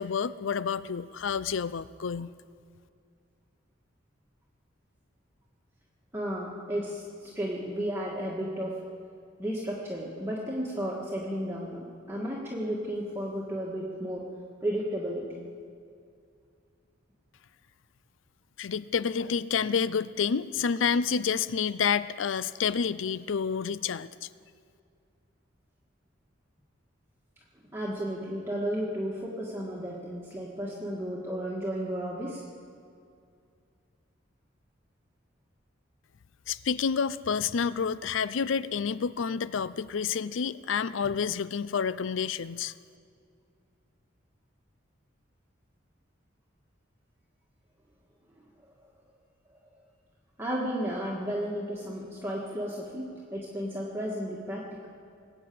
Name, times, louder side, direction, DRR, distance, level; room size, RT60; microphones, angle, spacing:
voice 1, 0.0-2.3 18.6-24.3 36.5-42.7, left 6 dB, 70° left, 17 dB, 0.5 m, -29 dB
voice 2, 6.1-8.8 9.4-14.3 14.6-15.3 27.7-32.4 50.4-54.9, equal, 10° right, -4 dB, 1.7 m, -33 dB
20.5 x 8.2 x 8.5 m, 2.3 s
head